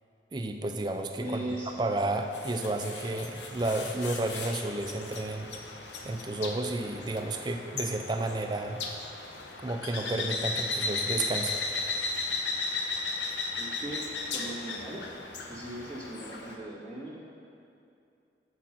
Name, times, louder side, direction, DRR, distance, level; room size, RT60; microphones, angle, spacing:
voice 1, 0.3-1.4 1.8-5.5 6.0-8.8 9.6-11.5, right 2 dB, 25° right, 5 dB, 0.4 m, -31 dB
voice 2, 1.2-1.7 13.6-14.0 14.3-15.0 15.5-17.2, right 1 dB, 10° left, -8 dB, 1.8 m, -38 dB
sound 1, 1.7-16.6, left 3 dB, 80° left, 0.8 m, -36 dB
7.4 x 6.2 x 5.9 m, 2.6 s
head